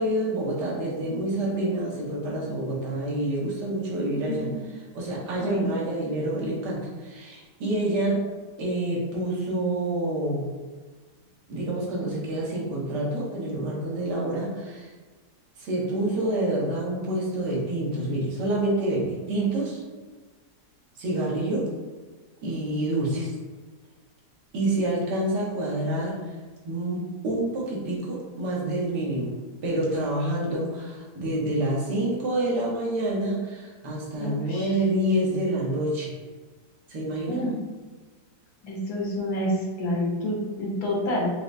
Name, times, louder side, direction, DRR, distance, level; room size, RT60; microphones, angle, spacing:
voice 1, 0.0-4.5 4.9-8.2 8.6-10.5 11.5-14.9 15.6-19.8 21.0-21.7 22.4-23.3 24.5-26.3 26.6-29.3 29.6-36.2 36.9-37.4, right 1 dB, 90° right, -4 dB, 1.5 m, -27 dB
voice 2, 34.2-34.7 37.3-37.5 38.6-41.3, left 1 dB, 70° left, -3 dB, 1.4 m, -28 dB
4.7 x 2.1 x 2.5 m, 1.3 s
omnidirectional pair, 1.8 m